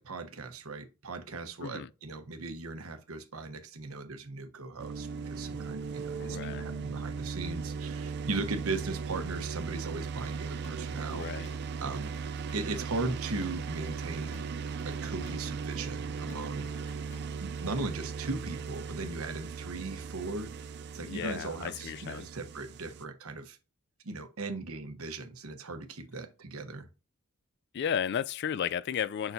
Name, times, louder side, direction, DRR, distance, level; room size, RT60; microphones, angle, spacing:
voice 1, 0.0-11.5 11.8-12.2 12.5-14.4 14.8-16.7 17.4-23.6 24.0-26.9, right 3 dB, 85° right, 1.1 m, -38 dB
sound 1, 4.8-23.0, right 5 dB, 50° right, 0.4 m, -38 dB
voice 2, 6.2-6.6 11.1-11.5 21.0-22.3 27.7-29.3, left 8 dB, 50° left, 0.3 m, -34 dB
Drum kit / Drum, 10.3-11.7 12.0-17.7, left 2 dB, 30° left, 1.2 m, -57 dB
6.8 x 5.9 x 2.7 m
head